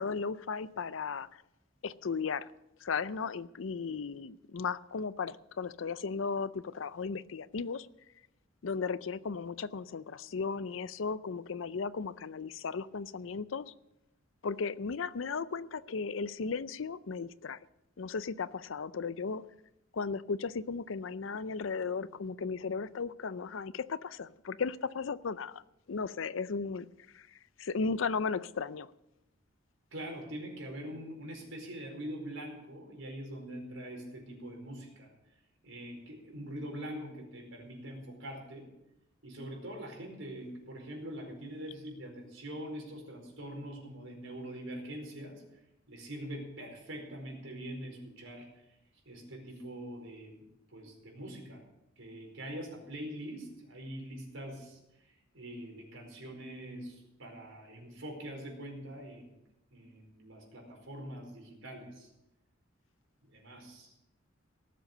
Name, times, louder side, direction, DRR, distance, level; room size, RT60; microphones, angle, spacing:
voice 1, 0.0-1.4 1.8-2.5 2.8-7.9 8.6-13.7 14.4-17.6 18.0-19.4 19.9-25.6 25.9-26.9 27.1-27.3 27.6-28.9, left 5 dB, 75° left, 0.5 m, -35 dB
voice 2, 29.9-35.1 35.6-38.7 39.2-45.4 45.9-48.5 49.0-50.4 50.7-51.6 52.0-54.8 55.3-59.2 59.7-62.1 63.2-63.9, right 1 dB, 85° right, 4.8 m, -43 dB
18.5 x 7.7 x 6.7 m
head